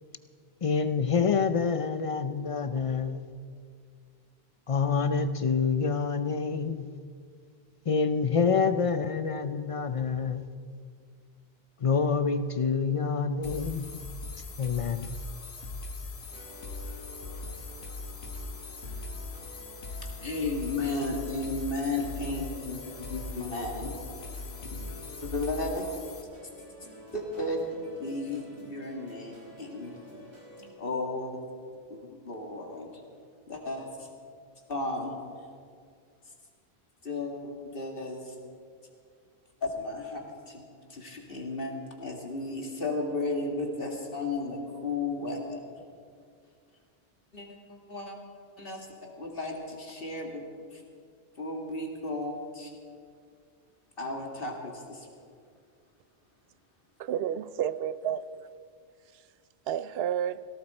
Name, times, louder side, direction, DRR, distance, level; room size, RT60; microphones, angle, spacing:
voice 1, 0.6-3.2 4.7-6.9 7.9-10.4 11.8-14.0 14.6-15.1, left 5 dB, 40° left, 0.6 m, -27 dB
sound 1, 13.4-26.2, left 3 dB, 75° left, 1.4 m, -40 dB
Space Syndrome, 16.3-30.7, equal, 40° right, 4.6 m, -50 dB
voice 2, 20.2-23.9 24.6-24.9 25.2-25.9 27.1-30.0 30.8-31.5 31.9-33.0 33.5-34.1 34.7-35.1 37.0-38.4 39.6-41.7 42.0-45.6 47.3-48.2 48.6-50.4 50.7-50.8 51.4-52.7 54.0-55.1, left 2 dB, 60° left, 2.3 m, -34 dB
voice 3, 57.0-58.3 59.7-60.5, right 9 dB, 75° right, 0.8 m, -30 dB
18.0 x 17.0 x 4.3 m
omnidirectional pair, 1.1 m